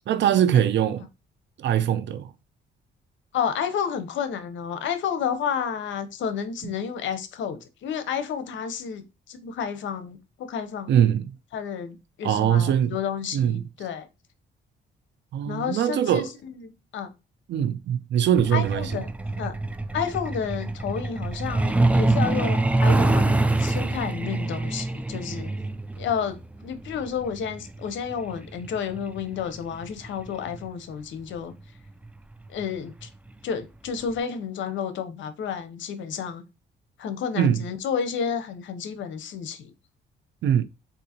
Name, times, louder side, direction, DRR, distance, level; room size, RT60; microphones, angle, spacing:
voice 1, 0.1-1.1 1.6-2.3 6.6-6.7 10.9-11.3 12.2-13.0 13.3-13.6 15.3-16.3 17.5-18.9 37.4-37.6 40.4-40.6, right 10 dB, 65° right, 0.5 m, -22 dB
voice 2, 3.3-11.0 11.5-14.1 15.5-17.1 18.5-19.1 19.4-19.6 19.9-25.5 26.0-26.4 26.6-31.5 32.5-33.1 33.4-36.4 37.0-39.7, left 7 dB, 70° left, 0.7 m, -31 dB
Truck, 18.4-30.7 31.9-32.1 32.5-32.6 33.0-33.3 33.6-33.7 34.2-34.3, right 2 dB, 5° right, 0.3 m, -25 dB
3.8 x 2.5 x 2.8 m
cardioid pair, 90°, 20 cm